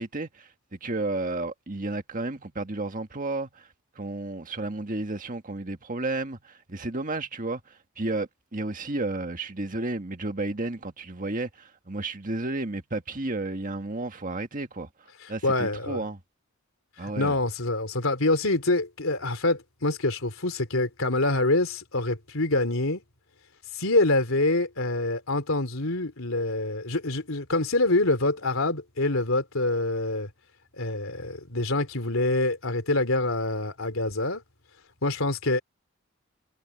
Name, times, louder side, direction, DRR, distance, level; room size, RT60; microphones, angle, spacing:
voice 1, 0.0-3.7 4.0-14.9 15.3-16.2 17.0-17.4, right 2 dB, 40° right, 1.7 m, -32 dB
voice 2, 15.4-16.0 17.0-23.0 23.7-30.3 30.8-34.4 35.0-35.6, left 2 dB, 75° left, 3.4 m, -26 dB
head